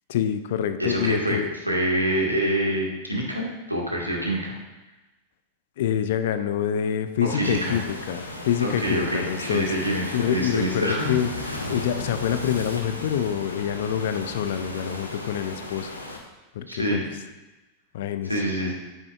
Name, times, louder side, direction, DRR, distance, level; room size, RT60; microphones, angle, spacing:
voice 1, 0.1-1.5 5.8-9.7 10.1-11.3 11.7-15.9 16.5-17.0 17.9-18.4, left 9 dB, 55° left, 11 dB, 0.5 m, -26 dB
voice 2, 0.8-1.4 1.6-4.5 7.2-7.8 8.6-11.1 16.7-17.0 18.3-18.7, right 1 dB, 85° right, -2 dB, 1.7 m, -26 dB
Waves surf, 7.4-16.2, left 2 dB, 85° left, 1.0 m, -35 dB
9.6 x 9.1 x 2.4 m, 1.1 s
figure-of-eight pair, 90°, 0 cm